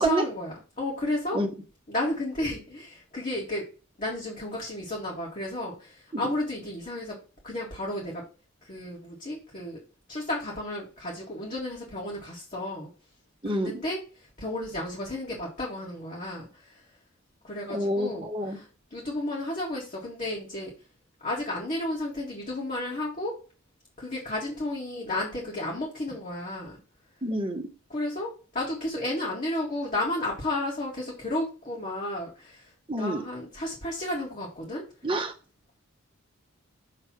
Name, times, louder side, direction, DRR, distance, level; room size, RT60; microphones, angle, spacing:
voice 1, 0.0-1.4 1.9-3.6 4.0-7.2 7.4-8.2 8.6-9.8 10.1-12.9 13.4-16.8 17.4-20.7 21.2-23.3 24.0-26.8 27.9-34.8, left 1 dB, 35° left, -4 dB, 1.8 m, -33 dB
voice 2, 13.4-13.8 17.7-18.6 27.2-27.6 32.9-33.2 35.0-35.3, right 1 dB, 25° right, 1 dB, 1.1 m, -27 dB
6.7 x 3.4 x 5.9 m, 0.35 s
head